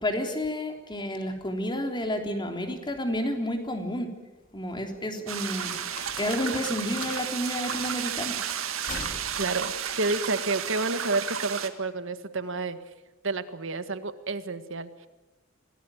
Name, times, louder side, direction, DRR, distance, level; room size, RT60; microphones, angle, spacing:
voice 1, 0.0-4.1 4.5-5.7 6.2-8.4, left 1 dB, 25° left, 4 dB, 3.5 m, -30 dB
sound 1, 4.4-11.2, left 3 dB, 40° left, 2.7 m, -45 dB
sound 2, 5.3-11.7, right 8 dB, 90° right, 2.0 m, -33 dB
voice 2, 9.4-12.8 13.2-15.1, right 3 dB, 70° right, 11 dB, 1.7 m, -30 dB
26.5 x 18.5 x 9.3 m, 1.1 s
head